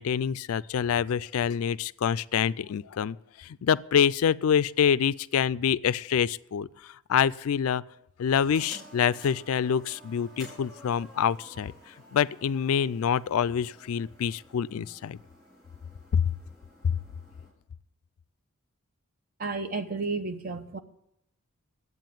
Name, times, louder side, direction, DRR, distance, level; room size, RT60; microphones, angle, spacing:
voice 1, 0.0-7.8 8.2-11.7 12.1-15.2 16.1-16.2, left 8 dB, 80° left, 0.4 m, -26 dB
sound 1, 8.3-17.5, equal, ahead, 6.2 m, -52 dB
voice 2, 19.4-20.8, right 3 dB, 40° right, 0.8 m, -32 dB
9.0 x 8.2 x 9.2 m
head